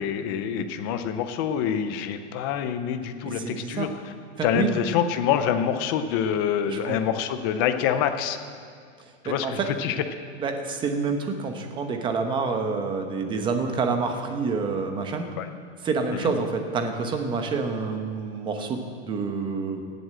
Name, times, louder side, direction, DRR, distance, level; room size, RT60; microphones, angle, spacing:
voice 1, 0.0-3.9 4.4-8.4 9.2-10.0 15.4-15.5 16.2-16.3, left 8 dB, 20° left, 9 dB, 0.4 m, -26 dB
voice 2, 3.2-3.9 4.4-4.8 6.6-7.0 9.2-9.7 10.4-15.3 15.8-19.8, right 4 dB, 15° right, 5 dB, 0.9 m, -28 dB
17.5 x 8.0 x 7.7 m, 2.2 s
supercardioid pair, 165°, 38 cm